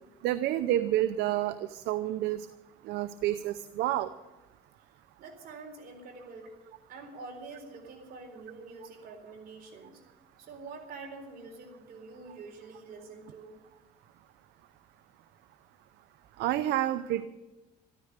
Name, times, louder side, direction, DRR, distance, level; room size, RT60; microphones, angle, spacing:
voice 1, 0.2-2.5 2.9-4.1 16.4-17.3, right 13 dB, 85° right, 13 dB, 0.6 m, -29 dB
voice 2, 5.2-6.5 6.9-10.0 10.4-13.6, right 3 dB, 60° right, 3 dB, 4.0 m, -46 dB
13.5 x 13.5 x 6.6 m, 1.1 s
cardioid pair, 110°, 17 cm